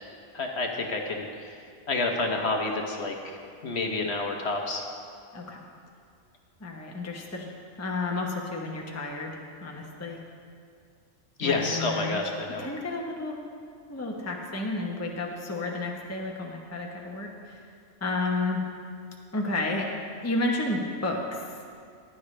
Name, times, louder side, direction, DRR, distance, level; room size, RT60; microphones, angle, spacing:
voice 1, 0.3-1.5 1.9-3.4 3.6-4.8 11.4-12.6, left 3 dB, 55° left, 2 dB, 1.1 m, -29 dB
voice 2, 5.3-5.6 6.6-7.5 7.8-9.3 9.6-10.2 11.4-12.2 12.6-13.4 13.9-17.6 18.0-18.6 19.3-19.9 20.2-21.4, left 2 dB, 15° left, 0 dB, 0.8 m, -31 dB
15.0 x 10.5 x 3.3 m, 2.3 s
omnidirectional pair, 1.4 m